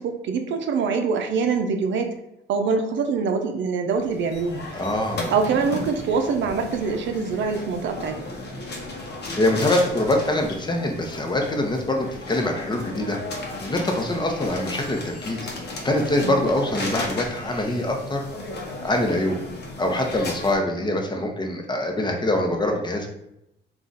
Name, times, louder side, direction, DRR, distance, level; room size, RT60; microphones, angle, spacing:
voice 1, 0.0-2.2 2.5-4.6 5.3-8.2 16.2-16.4, right 5 dB, 70° right, 5 dB, 0.5 m, -24 dB
sound 1, 3.9-20.6, left 2 dB, 55° left, 0.8 m, -35 dB
voice 2, 4.7-5.3 9.3-13.2 13.6-15.5 15.8-18.3 18.8-19.4 19.8-23.1, left 1 dB, 20° left, 2 dB, 0.8 m, -24 dB
3.6 x 2.4 x 4.0 m, 0.82 s
cardioid pair, 90°, 20 cm